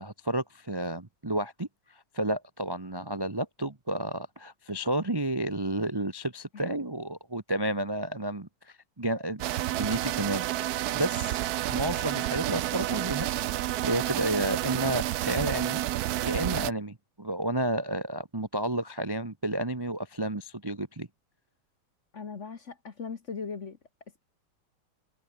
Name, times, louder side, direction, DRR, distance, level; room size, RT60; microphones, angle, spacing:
voice 1, 0.0-1.7 2.1-8.5 9.0-9.4 9.7-11.4 11.7-13.3 13.7-21.1, right 1 dB, 15° right, 0.8 m, -31 dB
sound 1, 9.4-16.7, right 14 dB, 80° right, 0.8 m, -30 dB
voice 2, 22.1-23.8, left 5 dB, 40° left, 1.4 m, -38 dB
omnidirectional pair, 2.3 m